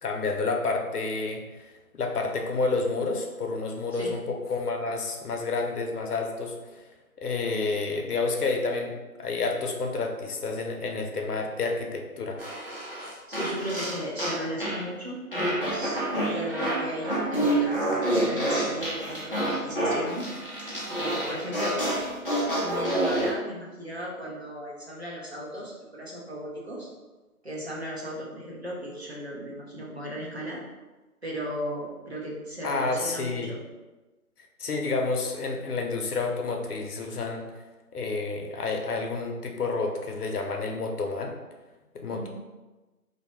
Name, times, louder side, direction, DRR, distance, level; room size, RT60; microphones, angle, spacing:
voice 1, 0.0-6.9 7.2-12.4 32.6-33.5 34.6-37.5 37.9-41.3 41.9-42.3, left 3 dB, 80° left, 3 dB, 0.7 m, -29 dB
sound 1, 12.4-14.8 15.3-23.3, right 1 dB, 40° left, 0.5 m, -28 dB
voice 2, 13.3-20.3 21.0-21.8 22.6-26.9 27.4-30.6 31.2-33.6 42.1-42.3, equal, 45° right, -4 dB, 0.6 m, -36 dB
2.8 x 2.1 x 3.0 m, 1.2 s
figure-of-eight pair, 170°, 45 cm